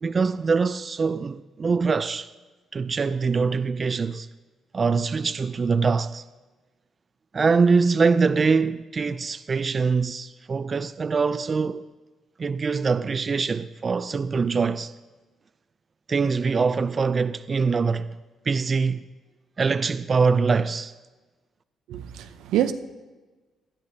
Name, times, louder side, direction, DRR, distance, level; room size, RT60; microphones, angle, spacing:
voice 1, 0.0-2.3 2.7-4.3 4.7-6.2 7.3-11.9 12.4-14.9 16.1-18.1 18.5-19.0 19.6-20.9, right 4 dB, 35° right, 0.4 m, -23 dB
voice 2, 21.9-22.7, right 12 dB, 90° right, 0.6 m, -26 dB
19.5 x 11.5 x 2.7 m
cardioid pair, 90°, 0 cm